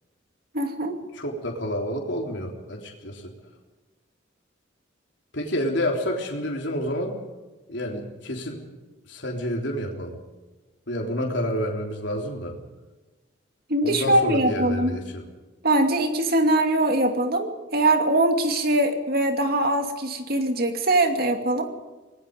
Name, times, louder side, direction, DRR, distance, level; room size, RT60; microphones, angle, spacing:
voice 1, 0.5-1.0 11.2-11.3 13.7-14.9 15.6-21.7, right 1 dB, 50° right, 5 dB, 2.6 m, -22 dB
voice 2, 1.1-3.2 5.3-7.2 7.7-8.6 9.1-10.2 10.9-12.6 13.8-15.3, equal, 65° left, 0 dB, 3.5 m, -29 dB
25.0 x 19.5 x 5.3 m, 1.2 s
head